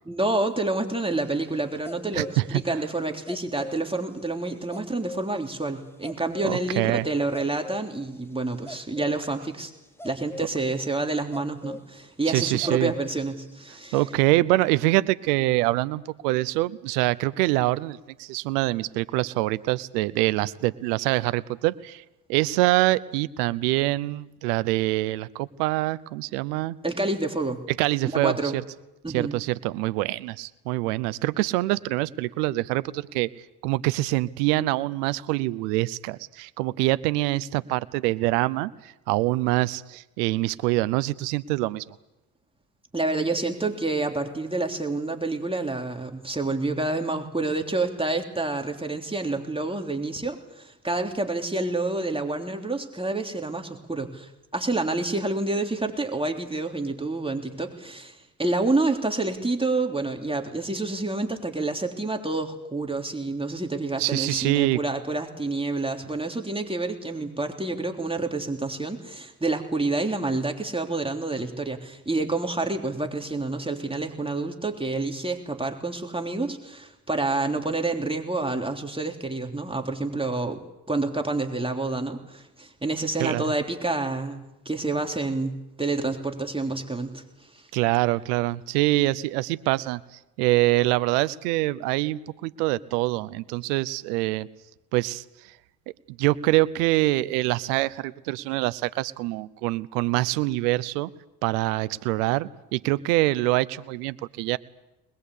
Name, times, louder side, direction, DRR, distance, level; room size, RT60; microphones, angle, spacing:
voice 1, 0.1-9.7 10.0-14.0 26.8-27.6 28.1-28.6 29.0-29.3 42.9-80.6 80.9-85.5 85.8-87.2, right 2 dB, 10° right, 3 dB, 3.4 m, -28 dB
sound 1, 1.2-2.7 3.3-3.9 4.7-5.4 6.0-6.9 7.2-7.9 8.5-9.2 10.0-10.5 11.3-11.8 12.6-13.4 13.7-14.1, left 1 dB, 5° left, 1.3 m, -39 dB
voice 2, 2.1-2.6 6.4-7.1 12.2-12.9 13.9-22.0 22.3-26.8 27.8-28.6 29.1-33.3 33.6-41.9 64.0-64.8 83.2-83.4 87.7-94.5 94.9-95.2 96.2-101.1 101.4-104.6, right 19 dB, 85° right, 17 dB, 0.8 m, -25 dB
22.0 x 21.0 x 8.4 m, 0.92 s
supercardioid pair, 70°, 46 cm